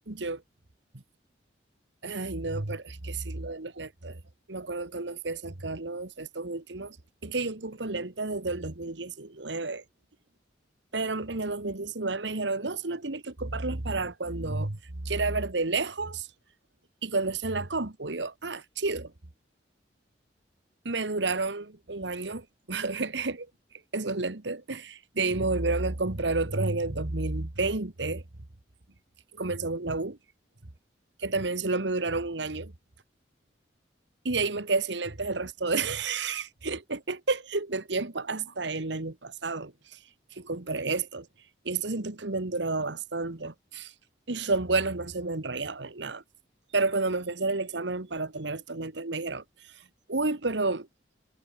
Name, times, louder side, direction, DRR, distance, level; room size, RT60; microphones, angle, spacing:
voice 1, 0.1-0.4 2.0-4.2 4.5-7.0 7.2-9.8 10.9-16.3 17.0-19.1 20.9-23.5 23.9-28.2 29.3-30.2 31.2-32.7 34.3-40.0 40.3-41.3 41.7-43.9 44.3-46.2 46.7-49.7 50.1-50.9, right 3 dB, 85° right, 1.6 m, -31 dB
head